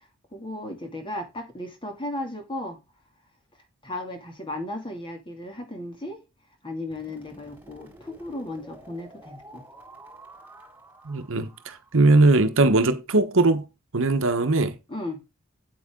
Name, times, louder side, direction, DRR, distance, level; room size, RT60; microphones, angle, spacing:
voice 1, 0.3-2.8 3.8-6.2 6.6-9.6 14.9-15.2, left 1 dB, 25° left, 2.6 m, -35 dB
sound 1, 6.9-12.8, right 1 dB, 10° right, 4.2 m, -50 dB
voice 2, 11.0-13.7 13.9-14.8, right 2 dB, 65° right, 1.1 m, -20 dB
8.5 x 8.4 x 3.8 m
head